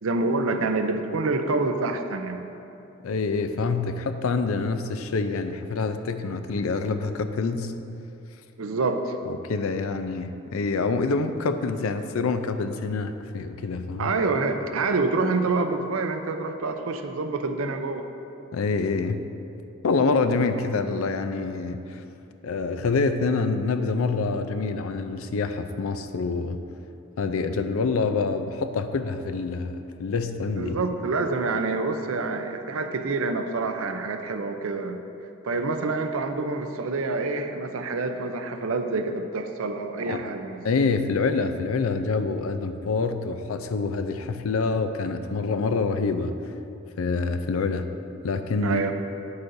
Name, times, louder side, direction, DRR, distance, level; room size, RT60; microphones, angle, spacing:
voice 1, 0.0-2.4 8.6-9.2 14.0-18.1 30.5-35.0 35.4-40.6 48.6-48.9, right 3 dB, 85° right, 6 dB, 0.6 m, -27 dB
voice 2, 3.0-7.7 9.3-14.1 18.5-19.3 19.8-22.0 22.4-26.6 27.2-30.7 40.1-40.2 40.6-46.3 47.0-47.9 48.2-48.8, left 4 dB, 90° left, 8 dB, 0.5 m, -26 dB
9.6 x 8.0 x 2.6 m, 2.8 s
head